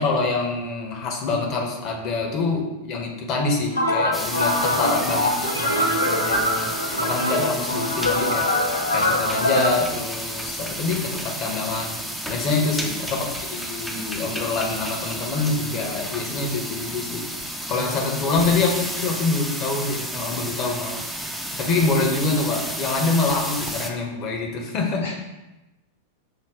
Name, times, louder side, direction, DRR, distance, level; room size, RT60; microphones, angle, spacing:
voice 1, 0.0-6.7 7.0-8.5 8.9-12.0 12.3-17.2 17.7-21.0 21.6-25.0, left 3 dB, 40° left, 1 dB, 0.8 m, -25 dB
sound 1, 3.7-9.7, left 1 dB, 80° left, 0.5 m, -23 dB
sound 2, 4.1-23.9, equal, ahead, 0.4 m, -32 dB
voice 2, 12.4-12.7 17.7-18.5 21.5-21.8 25.0-25.1, left 2 dB, 55° left, -2 dB, 1.4 m, -36 dB
5.6 x 2.2 x 3.5 m, 1.0 s
figure-of-eight pair, 90°, 0 cm